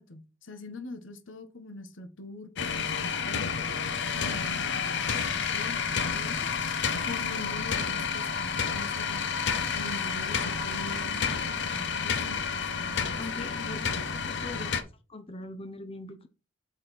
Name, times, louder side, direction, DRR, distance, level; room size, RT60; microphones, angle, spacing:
voice 1, 0.0-3.7 4.1-6.5 7.0-9.2 9.7-13.5, left 2 dB, 85° left, 1.2 m, -43 dB
sound 1, 2.6-14.8, left 6 dB, 65° left, 0.9 m, -30 dB
voice 2, 13.2-14.7 15.1-16.3, left 2 dB, 30° left, 0.7 m, -41 dB
8.1 x 4.1 x 4.1 m
head